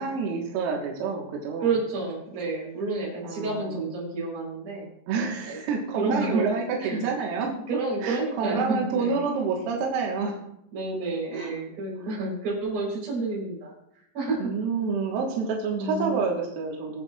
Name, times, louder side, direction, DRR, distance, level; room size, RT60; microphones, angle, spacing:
voice 1, 0.0-1.7 3.2-3.7 5.1-7.6 8.0-10.4 11.3-11.5 12.0-12.1 14.4-17.0, right 5 dB, 90° right, -1 dB, 4.3 m, -28 dB
voice 2, 1.6-4.9 5.4-5.6 6.0-6.4 6.8-7.1 7.7-9.2 10.7-13.7 14.1-14.5 15.7-16.3, right 3 dB, 40° right, -4 dB, 5.4 m, -29 dB
23.0 x 8.3 x 2.5 m, 0.75 s
omnidirectional pair, 5.9 m